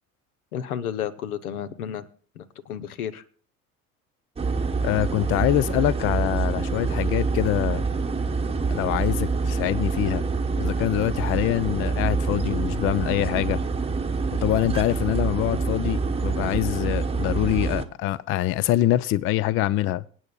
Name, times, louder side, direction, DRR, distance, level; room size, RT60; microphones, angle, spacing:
voice 1, 0.5-2.1 2.3-3.2, left 9 dB, 80° left, 0.9 m, -32 dB
sound 1, 4.4-17.8, right 4 dB, 15° right, 0.9 m, -26 dB
voice 2, 4.8-7.8 8.7-10.2 10.6-13.6 14.4-20.0, left 14 dB, 30° left, 0.4 m, -24 dB
25.5 x 8.7 x 2.3 m
figure-of-eight pair, 70°, 43 cm